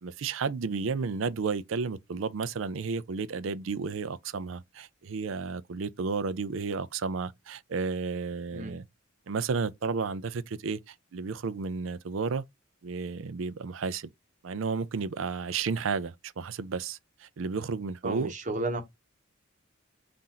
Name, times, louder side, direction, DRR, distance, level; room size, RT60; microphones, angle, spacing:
voice 1, 0.0-8.8 9.3-12.4 12.8-14.1 14.4-18.3, right 5 dB, 75° right, 0.5 m, -32 dB
voice 2, 18.0-18.8, right 2 dB, 40° right, 1.0 m, -33 dB
4.3 x 2.6 x 3.8 m
head